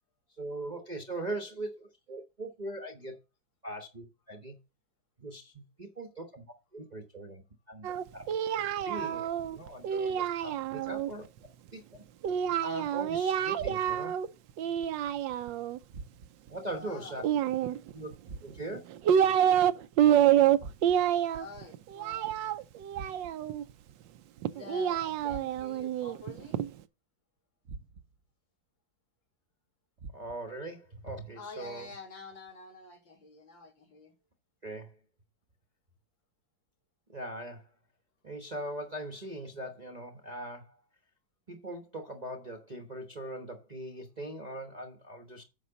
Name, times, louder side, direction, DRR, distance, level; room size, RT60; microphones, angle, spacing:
voice 1, 0.4-3.2 3.6-4.5 5.2-6.4 6.7-7.4 7.7-7.9 8.1-8.3 8.8-11.2 11.7-12.0 12.6-14.1 16.5-17.2 17.9-18.1 18.4-18.8 30.1-31.9 34.6-34.9 37.1-37.7 38.2-40.8 41.5-45.4, right 1 dB, 30° right, 0.9 m, -40 dB
Singing, 7.8-11.1 12.2-14.3 14.6-15.8 17.2-18.1 18.7-19.7 20.0-23.6 24.4-26.7, right 10 dB, 80° right, 1.3 m, -27 dB
sound 1, 13.6-14.2 15.9-16.5 18.2-18.9 20.6-21.2 22.9-23.6 25.3-25.9 27.6-28.3 30.0-30.6, right 4 dB, 55° right, 0.9 m, -47 dB
voice 2, 16.7-17.3 21.4-22.3 24.4-26.6 31.3-34.1, left 3 dB, 75° left, 3.3 m, -47 dB
9.3 x 6.3 x 3.9 m
omnidirectional pair, 2.1 m